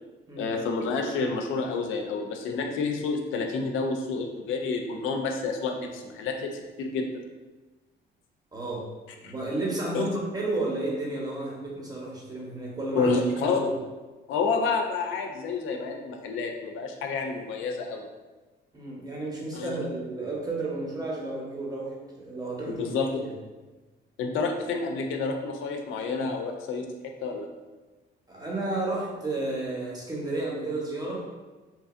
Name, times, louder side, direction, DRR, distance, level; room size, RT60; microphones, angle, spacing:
voice 1, 0.4-7.1 9.2-9.3 9.9-10.0 12.9-13.6 14.3-18.1 19.5-19.8 22.7-23.2 24.2-26.8 27.2-27.5, left 4 dB, 80° left, 3 dB, 0.4 m, -29 dB
voice 2, 8.5-8.9 9.2-13.7 18.7-22.8 23.2-23.3 28.3-31.3, right 2 dB, 20° right, -4 dB, 0.8 m, -32 dB
2.8 x 2.5 x 2.4 m, 1.2 s
cardioid pair, 90°, 20 cm